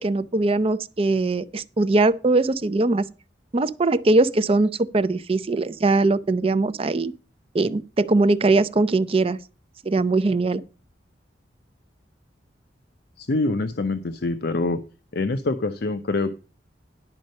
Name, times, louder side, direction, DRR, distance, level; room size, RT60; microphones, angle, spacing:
voice 1, 0.0-3.1 3.5-7.1 7.5-9.4 9.8-10.6, right 2 dB, 30° right, 0.5 m, -21 dB
voice 2, 13.2-14.8 15.1-16.3, left 2 dB, 60° left, 0.6 m, -25 dB
11.0 x 5.2 x 6.4 m
head